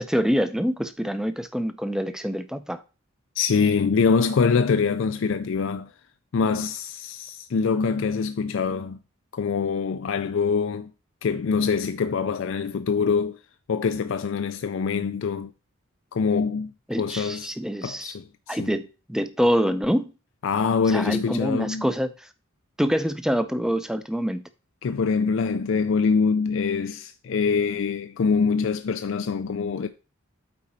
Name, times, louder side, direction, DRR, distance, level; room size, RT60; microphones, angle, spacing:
voice 1, 0.0-2.8 16.9-18.2 18.5-20.1 20.9-22.3 22.8-24.4, equal, 5° right, 0.5 m, -26 dB
voice 2, 3.4-5.9 6.3-9.0 9.3-10.9 11.2-13.4 13.7-15.5 16.1-16.7 17.0-17.5 17.8-18.8 20.4-21.9 24.8-29.9, left 5 dB, 65° left, 0.4 m, -24 dB
8.7 x 4.3 x 4.2 m
head